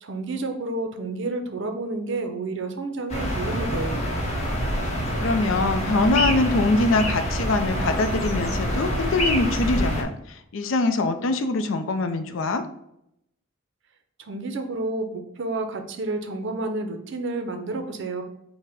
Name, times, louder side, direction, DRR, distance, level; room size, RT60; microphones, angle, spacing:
voice 1, 0.0-4.0 14.2-18.2, right 2 dB, 60° right, 6 dB, 0.6 m, -30 dB
sound 1, 3.1-10.0, equal, 30° left, 0.9 m, -26 dB
voice 2, 4.9-12.6, left 2 dB, 65° left, 8 dB, 0.5 m, -23 dB
5.7 x 2.1 x 3.5 m, 0.77 s
head